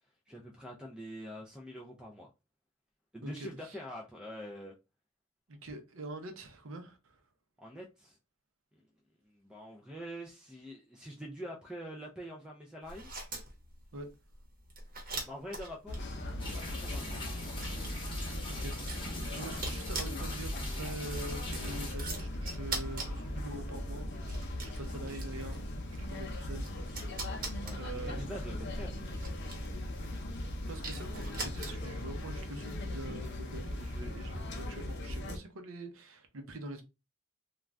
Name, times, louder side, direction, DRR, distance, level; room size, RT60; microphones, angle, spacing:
voice 1, 0.3-2.3 3.1-4.7 7.6-8.2 8.7-8.8 9.3-13.1 15.2-16.1 16.6-17.2 27.6-29.0, equal, 5° right, 0.4 m, -45 dB
voice 2, 3.2-3.8 5.5-7.2 13.9-14.1 18.5-25.6 26.0-27.2 27.8-28.2 30.4-36.8, right 2 dB, 75° right, 0.7 m, -45 dB
sound 1, 12.8-32.1, right 3 dB, 40° right, 0.9 m, -44 dB
sound 2, 15.9-35.4, left 1 dB, 55° left, 0.6 m, -39 dB
sound 3, 16.4-21.9, left 2 dB, 25° left, 0.8 m, -43 dB
2.4 x 2.3 x 3.2 m
head